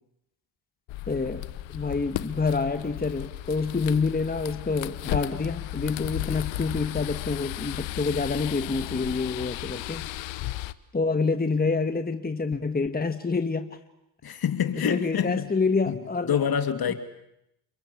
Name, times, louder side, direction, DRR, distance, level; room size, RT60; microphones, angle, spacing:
sound 1, 0.9-10.7, left 15 dB, 80° left, 1.1 m, -35 dB
voice 1, 1.1-1.4 1.7-10.1 10.9-13.8 14.7-16.4 16.9-17.0, left 4 dB, 20° left, 1.8 m, -27 dB
voice 2, 14.2-15.5 15.9-16.9, left 8 dB, 55° left, 2.7 m, -27 dB
29.5 x 22.5 x 8.6 m
supercardioid pair, 70°, 45 cm